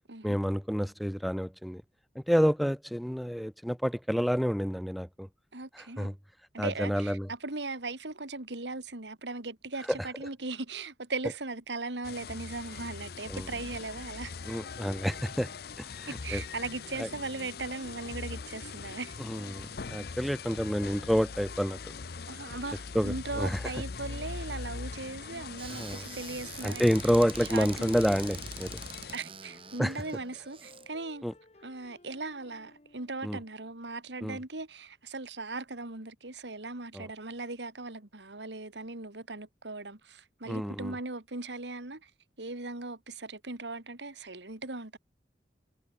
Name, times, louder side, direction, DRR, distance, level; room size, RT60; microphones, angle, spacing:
voice 1, 0.2-1.8 2.1-5.3 5.7-6.1 6.6-7.3 13.3-13.5 14.5-15.5 15.8-16.4 17.0-17.1 19.2-21.8 22.9-23.6 25.7-26.0 26.6-28.8 29.8-29.9 31.2-31.3 33.2-33.4 34.2-34.4 36.9-37.1 40.5-40.9, equal, ahead, 0.7 m, -29 dB
voice 2, 5.5-6.2 6.5-14.3 16.1-19.2 22.3-26.9 27.5-28.0 29.1-31.2 31.6-42.1 42.4-45.0, right 3 dB, 90° right, 2.6 m, -38 dB
sound 1, 12.0-29.2, left 4 dB, 60° left, 0.7 m, -41 dB
Squeak / Cupboard open or close, 25.6-30.9, right 6 dB, 30° right, 3.3 m, -45 dB
sound 2, 29.3-33.9, left 2 dB, 40° left, 2.0 m, -58 dB
head